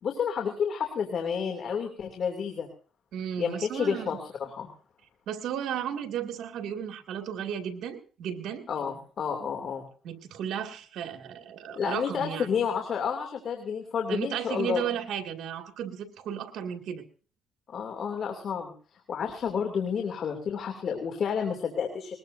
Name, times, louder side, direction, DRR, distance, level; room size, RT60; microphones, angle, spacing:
voice 1, 0.0-2.7 3.4-4.7 8.7-9.9 11.7-14.8 17.7-18.7 19.1-22.2, left 7 dB, 60° left, 3 dB, 2.7 m, -30 dB
voice 2, 3.1-4.1 5.3-8.6 10.0-12.5 14.1-17.0, right 9 dB, 80° right, 5 dB, 2.3 m, -34 dB
21.0 x 20.5 x 2.7 m, 0.41 s
cardioid pair, 90°, 0 cm